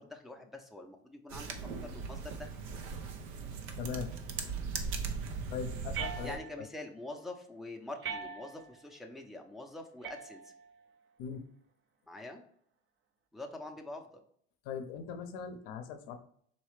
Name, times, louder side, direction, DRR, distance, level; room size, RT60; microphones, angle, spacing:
voice 1, 0.0-1.5 1.8-2.5 6.2-10.5 12.1-12.4 13.3-14.1, left 2 dB, ahead, 2 dB, 0.6 m, -45 dB
sound 1, 1.3-6.4, right 5 dB, 70° right, 0.7 m, -39 dB
voice 2, 3.8-4.1 5.5-6.4 11.2-11.4 14.6-16.2, left 7 dB, 65° left, 6 dB, 0.6 m, -40 dB
sound 2, 5.9-6.8 8.0-8.8 10.0-10.8, right 6 dB, 40° right, 0.7 m, -42 dB
4.2 x 3.1 x 3.1 m, 0.64 s
hypercardioid pair, 80°, 33 cm